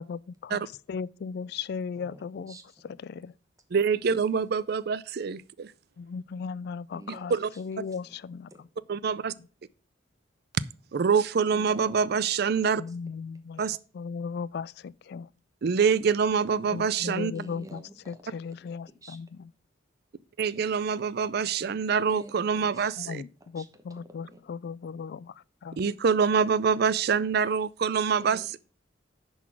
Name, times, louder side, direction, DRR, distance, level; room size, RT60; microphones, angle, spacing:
voice 1, 0.0-2.6 3.0-3.3 6.0-8.5 12.8-13.6 13.9-15.3 16.7-19.3 23.0-23.3 23.5-25.3 25.6-25.8, left 5 dB, 55° left, 0.3 m, -37 dB
voice 2, 1.9-2.9 6.9-7.6 7.9-8.1 8.5-8.6 11.5-12.0 12.9-13.0 13.6-13.7 17.3-18.2 19.0-19.2 22.1-23.3 23.5-24.4 28.1-28.6, right 1 dB, 20° right, 1.1 m, -48 dB
voice 3, 3.7-5.7 7.3-7.5 8.9-9.3 10.5-10.6 10.9-12.8 13.6-13.8 15.6-17.3 20.4-23.2 25.8-28.6, right 6 dB, 55° right, 0.4 m, -25 dB
10.5 x 4.0 x 5.9 m
head